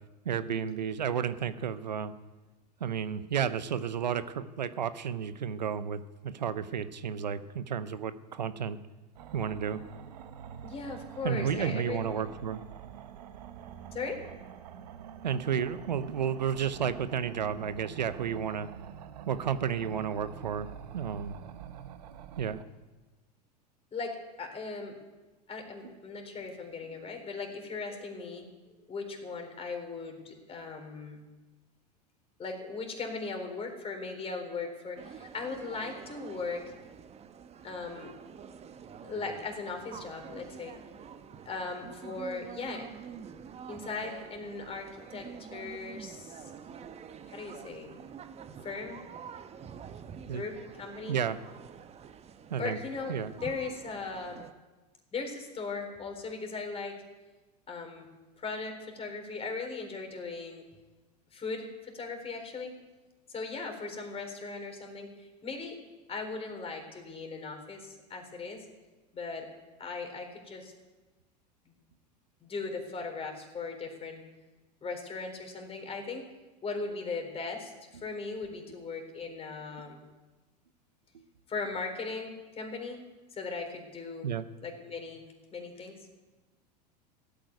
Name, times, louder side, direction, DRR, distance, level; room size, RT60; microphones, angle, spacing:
voice 1, 0.2-2.1 2.8-8.8 9.3-9.8 11.2-12.6 15.2-18.7 19.3-21.4 22.4-22.6 50.3-50.4 51.1-51.4 52.5-52.8 53.1-53.3 79.8-79.9 84.2-84.5, right 8 dB, 85° right, 13 dB, 0.8 m, -32 dB
sound 1, 9.1-22.6, right 9 dB, 70° right, 1.2 m, -46 dB
voice 2, 10.6-12.2 13.9-14.2 23.9-25.0 25.5-31.2 32.4-36.7 37.6-38.1 39.0-40.7 41.5-42.9 43.7-46.5 47.3-47.9 48.6-49.0 50.3-51.2 52.6-54.4 55.1-57.0 57.7-58.1 58.4-60.6 61.3-62.7 63.3-65.1 65.4-65.8 66.1-68.7 69.1-69.5 69.8-70.7 72.4-74.2 74.8-76.3 76.6-80.0 81.5-83.0 83.3-84.3 84.6-85.2 85.5-86.2, left 4 dB, 30° left, 4 dB, 3.9 m, -38 dB
sound 2, 35.0-54.5, right 7 dB, 30° right, 1.2 m, -47 dB
16.0 x 8.9 x 9.4 m, 1.2 s
hypercardioid pair, 90°, 21 cm